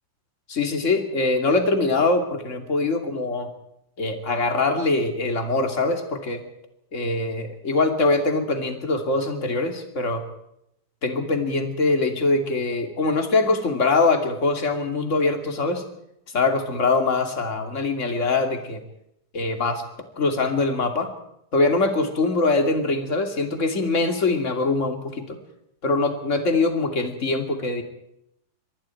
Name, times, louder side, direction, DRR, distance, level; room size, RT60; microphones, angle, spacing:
voice 1, 0.5-3.5 4.0-6.4 6.9-10.2 11.0-15.8 16.3-18.8 19.3-19.8 20.2-21.1 21.5-25.4 25.8-27.8, left 3 dB, 25° left, 5 dB, 2.4 m, -23 dB
25.5 x 22.0 x 4.6 m, 0.78 s
omnidirectional pair, 4.2 m